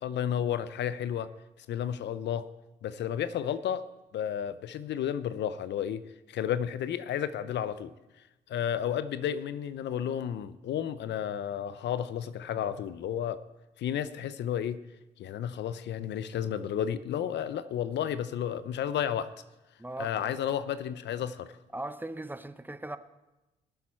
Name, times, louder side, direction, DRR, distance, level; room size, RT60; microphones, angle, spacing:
voice 1, 0.0-1.3 1.6-2.5 2.8-7.9 8.5-13.4 13.8-14.8 15.2-19.3 20.0-21.5, left 9 dB, 60° left, 15 dB, 0.6 m, -32 dB
voice 2, 19.8-20.4 21.7-23.0, right 1 dB, 10° right, 12 dB, 0.7 m, -38 dB
21.0 x 7.3 x 4.4 m, 1.0 s
hypercardioid pair, 55°, 20 cm